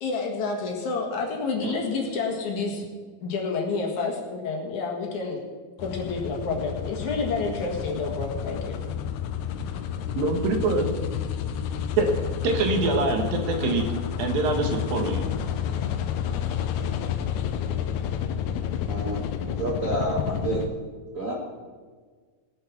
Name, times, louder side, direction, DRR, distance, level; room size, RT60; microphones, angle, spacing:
voice 1, 0.0-2.9 3.2-5.4 5.8-8.8, left 4 dB, 60° left, 0 dB, 3.1 m, -29 dB
sound 1, 5.8-20.7, left 8 dB, 75° left, 1.8 m, -30 dB
voice 2, 10.2-10.9 12.0-12.1 12.4-13.9 14.2-15.2, right 3 dB, 80° right, 4 dB, 3.3 m, -24 dB
voice 3, 18.9-20.7 21.1-21.3, right 2 dB, 60° right, -3 dB, 0.8 m, -29 dB
18.5 x 7.7 x 6.0 m, 1.5 s
omnidirectional pair, 4.0 m